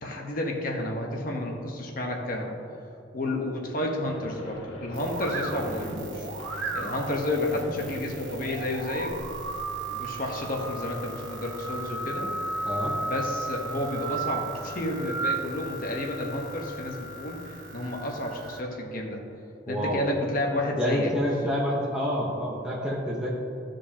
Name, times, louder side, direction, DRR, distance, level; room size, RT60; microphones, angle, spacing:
voice 1, 0.0-2.6 3.1-6.3 6.7-9.1 9.8-12.3 13.0-19.2 19.7-21.1, left 1 dB, 45° left, 0 dB, 1.1 m, -31 dB
sound 1, 4.0-10.1, equal, 85° left, 1.7 m, -44 dB
sound 2, 4.9-18.6, right 2 dB, 75° right, 1.1 m, -35 dB
voice 2, 19.7-20.1 20.8-23.3, equal, 5° right, -5 dB, 0.9 m, -28 dB
14.5 x 5.1 x 2.9 m, 2.8 s
head